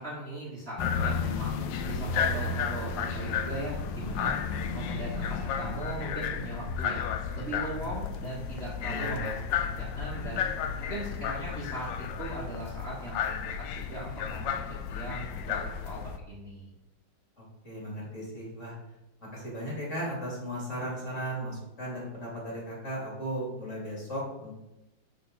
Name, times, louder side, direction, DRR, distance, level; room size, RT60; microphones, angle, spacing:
voice 1, 0.0-1.6 1.8-4.4 4.7-10.4 10.9-13.4 13.7-16.0 16.3-16.7, right 1 dB, 35° right, -6 dB, 1.7 m, -39 dB
sound 1, 0.8-16.2, left 6 dB, 75° left, 1.2 m, -32 dB
voice 2, 8.1-9.2 17.4-18.7 19.3-24.6, equal, 35° left, -5 dB, 3.0 m, -36 dB
6.7 x 6.2 x 4.0 m, 0.95 s
omnidirectional pair, 2.3 m